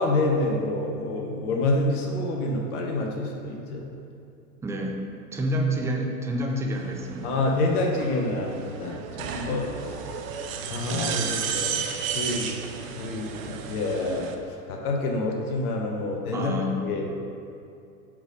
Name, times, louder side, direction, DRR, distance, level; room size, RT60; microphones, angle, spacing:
voice 1, 0.0-3.8 7.2-9.7 10.7-11.8 12.1-12.5 12.9-14.3 14.7-17.0, left 2 dB, 70° left, 1 dB, 1.0 m, -27 dB
voice 2, 4.6-5.0 5.3-7.5 16.3-16.8, equal, 5° right, 0 dB, 0.3 m, -28 dB
sound 1, 6.7-14.3, right 7 dB, 60° right, 0.8 m, -33 dB
6.0 x 4.1 x 5.2 m, 2.6 s
hypercardioid pair, 95°, 46 cm